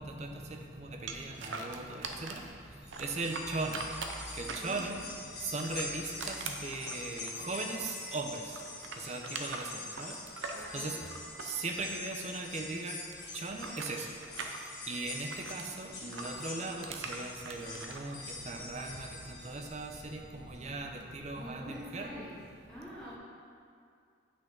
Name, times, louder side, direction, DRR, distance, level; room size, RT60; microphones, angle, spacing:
voice 1, 0.0-5.0 5.4-11.0 11.4-13.0 13.3-22.3, right 3 dB, 35° right, 3 dB, 0.6 m, -39 dB
sound 1, 1.1-2.5 2.9-5.1 5.5-8.0 8.3-12.5 12.7-15.7 16.1-18.0, right 4 dB, 85° right, 0.6 m, -42 dB
sound 2, 2.8-20.2 20.6-20.7 21.7-21.8, left 3 dB, 60° left, 1.9 m, -45 dB
voice 2, 4.5-5.2 10.5-11.0 21.3-22.4 22.7-23.2, equal, 5° left, -9 dB, 1.0 m, -45 dB
8.4 x 6.0 x 3.9 m, 2.3 s
head